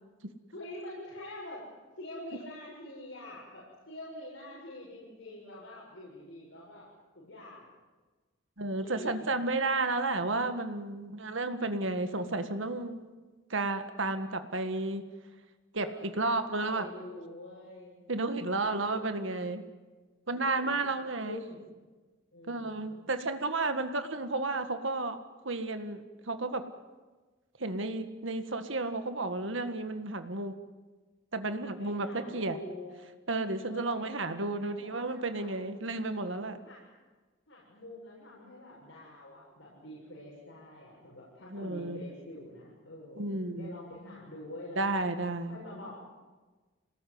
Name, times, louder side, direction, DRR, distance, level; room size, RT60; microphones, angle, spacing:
voice 1, 0.5-1.6 2.0-6.9 7.1-7.8 8.8-9.4 15.7-18.0 18.4-19.1 20.4-20.9 21.2-21.7 22.3-23.0 31.8-32.9 33.6-35.5 36.6-36.8 37.5-45.9, left 1 dB, 70° left, -5 dB, 7.3 m, -46 dB
voice 2, 8.6-13.0 13.5-15.0 15.7-16.9 18.1-19.6 20.3-21.4 22.5-25.2 25.4-26.0 26.3-26.6 27.6-30.5 31.3-32.6 33.3-36.6 41.5-42.0 43.2-43.7 44.8-45.6, right 2 dB, 65° right, 8 dB, 1.8 m, -32 dB
27.5 x 19.0 x 9.6 m, 1.3 s
head